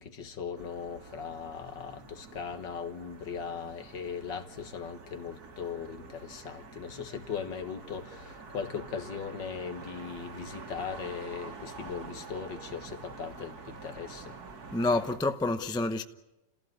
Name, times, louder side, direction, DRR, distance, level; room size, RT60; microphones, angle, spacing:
voice 1, 0.0-14.3, left 6 dB, 70° left, 2.2 m, -39 dB
sound 1, 0.6-15.2, right 4 dB, 55° right, 2.2 m, -47 dB
voice 2, 14.7-16.0, left 2 dB, 5° left, 0.3 m, -28 dB
30.0 x 15.5 x 9.5 m
omnidirectional pair, 2.0 m